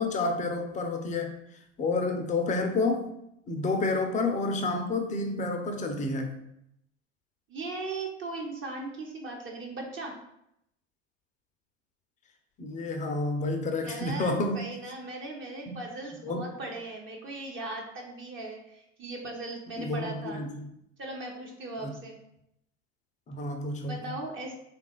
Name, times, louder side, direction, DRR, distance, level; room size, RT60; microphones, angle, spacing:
voice 1, 0.0-1.3 1.8-3.1 3.5-6.3 12.6-14.7 15.7-15.8 16.2-16.5 19.8-20.7 21.8-21.9 23.3-24.2, left 3 dB, 20° left, 4 dB, 0.5 m, -29 dB
voice 2, 7.5-10.2 13.8-20.4 21.0-22.2 23.8-24.5, right 2 dB, 30° right, -1 dB, 0.8 m, -38 dB
3.4 x 2.4 x 3.8 m, 0.78 s
hypercardioid pair, 95°, 37 cm